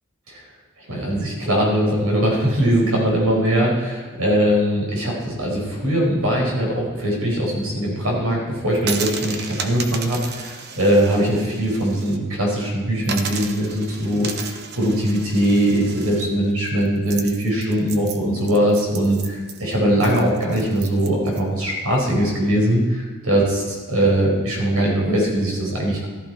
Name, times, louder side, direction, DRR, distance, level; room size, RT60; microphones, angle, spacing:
voice 1, 0.9-26.1, right 1 dB, 85° right, -2 dB, 5.2 m, -21 dB
sound 1, 8.7-12.2 12.5-12.6 13.0-21.4, right 5 dB, 50° right, 1.1 m, -34 dB
14.5 x 13.5 x 4.9 m, 1.4 s
head